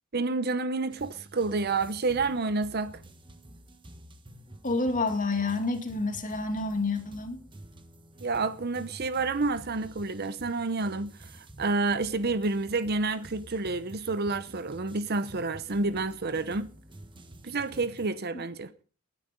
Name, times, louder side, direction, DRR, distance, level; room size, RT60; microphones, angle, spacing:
voice 1, 0.1-3.0 8.2-11.3 11.6-16.7 17.4-18.7, right 3 dB, 50° right, 0.8 m, -29 dB
sound 1, 0.9-18.1, right 1 dB, 25° right, 1.3 m, -50 dB
voice 2, 4.6-7.4 18.3-18.4, left 3 dB, 40° left, 2.5 m, -29 dB
20.5 x 9.5 x 5.2 m
head